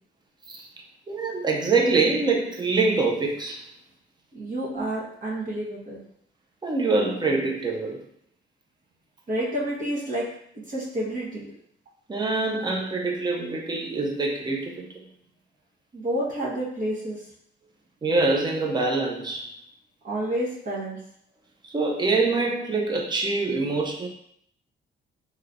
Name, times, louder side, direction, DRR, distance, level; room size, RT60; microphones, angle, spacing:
voice 1, 1.1-3.6 4.7-4.8 6.6-8.0 12.1-14.9 18.0-19.5 21.6-24.1, right 3 dB, 20° right, 1 dB, 0.6 m, -25 dB
voice 2, 4.3-6.0 9.3-10.3 10.7-11.4 15.9-17.2 20.0-21.0, right 1 dB, 45° right, -6 dB, 1.2 m, -29 dB
3.2 x 2.9 x 2.5 m, 0.68 s
cardioid pair, 90°, 20 cm